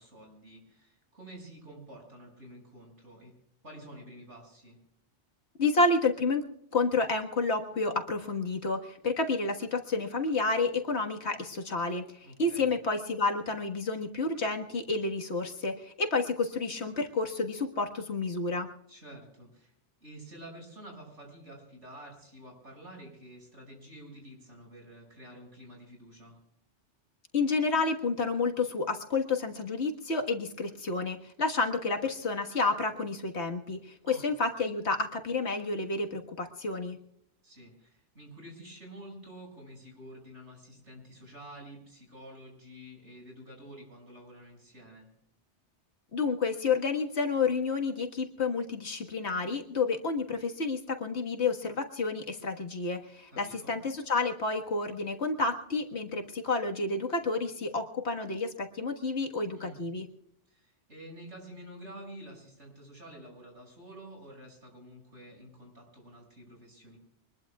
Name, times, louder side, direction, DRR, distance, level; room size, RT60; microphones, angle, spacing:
voice 1, 0.0-3.3 3.6-4.8 12.2-12.7 18.9-19.7 20.0-26.4 34.0-34.2 37.4-45.1 53.3-53.7 59.6-59.8 60.5-67.0, right 1 dB, 80° right, 0 dB, 6.7 m, -49 dB
voice 2, 5.6-6.4 6.7-18.7 27.3-37.0 46.1-60.1, left 3 dB, 70° left, 3 dB, 1.9 m, -30 dB
24.5 x 20.5 x 2.4 m, 0.74 s
omnidirectional pair, 1.2 m